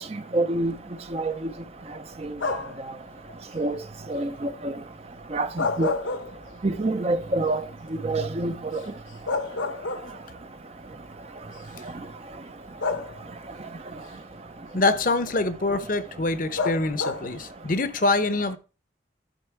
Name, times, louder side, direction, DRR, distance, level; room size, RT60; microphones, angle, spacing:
voice 1, 0.3-0.7 1.1-1.3 3.6-3.8 4.1-4.7 5.3-5.5 5.8-5.9 6.6-7.6 8.0-8.8, right 2 dB, 30° right, 0.6 m, -25 dB
sound 1, 2.4-2.9 5.4-6.8 7.2-7.3 8.8-8.9 9.3-10.4 11.4-11.5 12.8-13.5 16.6-17.4, left 4 dB, 75° left, 1.0 m, -29 dB
voice 2, 14.7-18.6, left 3 dB, 45° left, 0.8 m, -25 dB
12.0 x 4.4 x 4.5 m
head